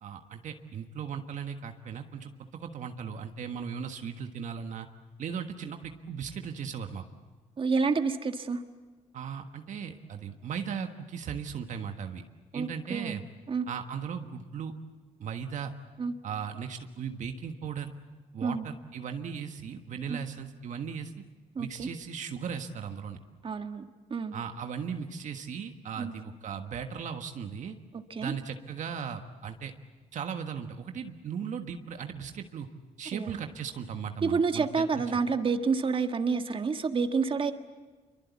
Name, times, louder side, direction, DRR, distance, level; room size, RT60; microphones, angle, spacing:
voice 1, 0.0-2.3 2.6-4.9 5.2-7.0 9.1-12.2 12.5-13.2 13.7-14.7 15.2-15.7 16.2-17.9 18.3-21.1 21.6-23.2 24.3-27.8 28.2-29.7 30.1-32.7 33.0-35.0, right 7 dB, 65° right, 6 dB, 1.5 m, -37 dB
voice 2, 7.6-8.6 12.5-13.2 13.5-13.7 16.0-16.1 18.4-18.6 20.1-20.2 21.5-21.9 23.4-24.3 26.0-26.1 28.1-28.3 33.1-33.3 34.2-37.5, right 5 dB, 40° right, 7 dB, 1.7 m, -29 dB
26.0 x 23.5 x 8.4 m, 1.3 s
cardioid pair, 85°, 14 cm